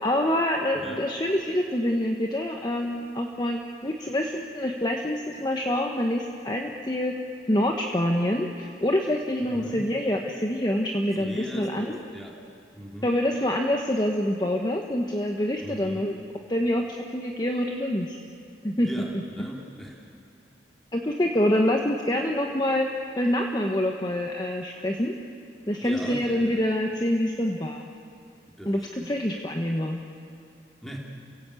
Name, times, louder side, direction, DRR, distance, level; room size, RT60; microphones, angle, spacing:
voice 1, 0.0-7.1 7.5-12.0 13.0-16.2 16.5-18.2 18.6-19.5 20.9-22.9 23.2-25.2 25.7-27.8 28.7-30.0, left 1 dB, 25° left, 2 dB, 1.1 m, -26 dB
voice 2, 0.7-1.0 9.4-9.9 11.2-12.4 12.7-13.2 15.6-16.1 18.8-20.0 25.8-26.6 28.5-29.2 30.8-31.0, equal, ahead, -1 dB, 3.0 m, -38 dB
29.5 x 16.5 x 8.4 m, 2.6 s
head